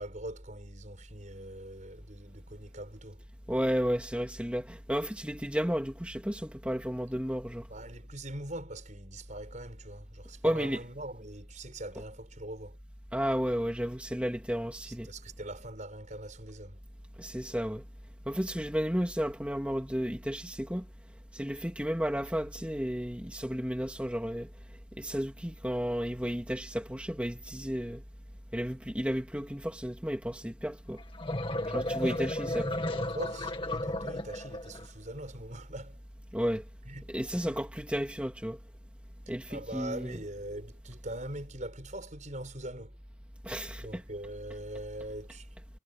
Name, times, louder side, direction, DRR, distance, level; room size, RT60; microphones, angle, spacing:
voice 1, 0.0-3.3 7.7-12.8 14.9-16.8 31.6-36.0 36.9-37.1 37.3-37.6 39.3-43.0 43.8-45.5, right 1 dB, 40° right, 5.9 m, -42 dB
voice 2, 3.5-7.7 10.4-10.8 13.1-15.1 17.2-17.8 18.3-20.9 21.3-24.5 25.0-28.0 28.5-31.0 31.7-32.7 36.3-36.6 37.1-38.6 39.3-40.2 43.4-44.0, equal, 5° right, 3.0 m, -32 dB
sound 1, 31.0-34.9, left 1 dB, 25° left, 1.9 m, -33 dB
head